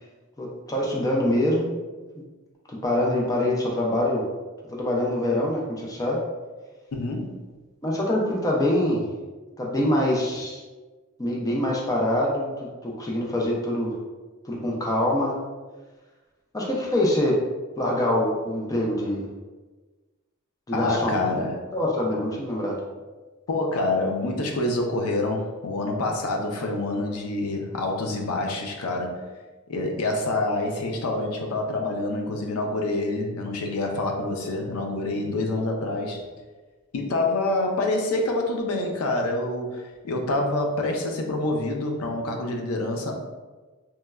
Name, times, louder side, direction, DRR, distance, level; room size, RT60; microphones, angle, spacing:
voice 1, 0.4-1.7 2.7-4.2 4.7-6.2 7.8-9.1 9.6-10.6 11.2-14.0 14.4-15.4 16.5-17.4 17.8-19.2 20.7-21.5 21.7-22.8, left 1 dB, 15° left, -2 dB, 0.3 m, -24 dB
voice 2, 6.9-7.4 20.7-21.7 23.5-29.2 29.7-36.3 36.9-43.1, left 2 dB, 80° left, 2 dB, 0.4 m, -27 dB
3.0 x 2.2 x 2.2 m, 1.3 s
head